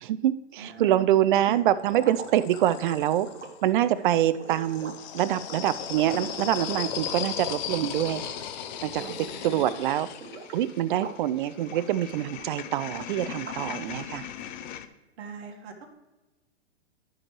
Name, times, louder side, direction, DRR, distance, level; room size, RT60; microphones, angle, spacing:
voice 1, 0.0-3.3 3.6-8.2 8.8-9.1 9.4-10.1 10.5-14.3, right 12 dB, 45° right, 14 dB, 0.5 m, -25 dB
voice 2, 0.6-1.1 1.4-1.7 3.9-4.2 9.0-9.6 15.2-15.9, right 7 dB, 65° right, 2 dB, 1.9 m, -41 dB
sound 1, 1.2-3.6 4.4-14.9, left 9 dB, 40° left, 0.6 m, -37 dB
sound 2, 1.8-8.5 8.8-9.3 9.6-11.3 11.6-13.8, right 5 dB, 80° right, 1.4 m, -44 dB
12.0 x 6.1 x 3.1 m, 1.1 s
hypercardioid pair, 130°, 35 cm